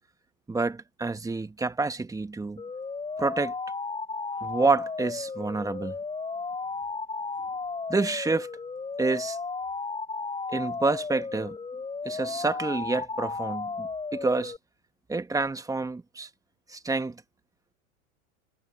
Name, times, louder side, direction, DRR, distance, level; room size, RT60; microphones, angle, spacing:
voice 1, 0.5-2.6 3.2-3.5 4.4-5.9 7.9-8.5 9.0-9.4 10.5-11.6 12.0-14.5 15.1-16.3 16.7-17.2, right 3 dB, 10° right, 1.6 m, -28 dB
sound 1, 2.6-14.6, left 4 dB, 10° left, 7.2 m, -34 dB
hypercardioid pair, 115°, 41 cm